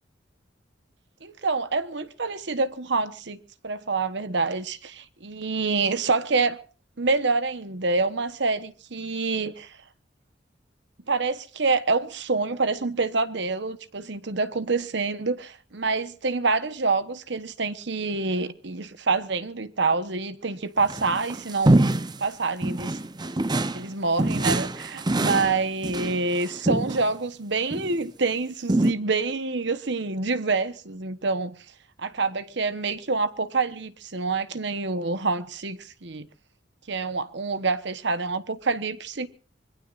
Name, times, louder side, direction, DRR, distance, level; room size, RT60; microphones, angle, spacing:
voice 1, 1.2-6.6 7.0-9.8 11.1-21.8 22.2-23.0 23.7-31.5 32.0-36.3 36.9-39.3, right 3 dB, 65° right, 1.1 m, -27 dB
sound 1, 20.8-22.2 22.6-23.9 24.2-27.1 27.7-27.9 28.7-28.9, right 1 dB, 20° right, 0.7 m, -24 dB
25.5 x 22.0 x 2.6 m
head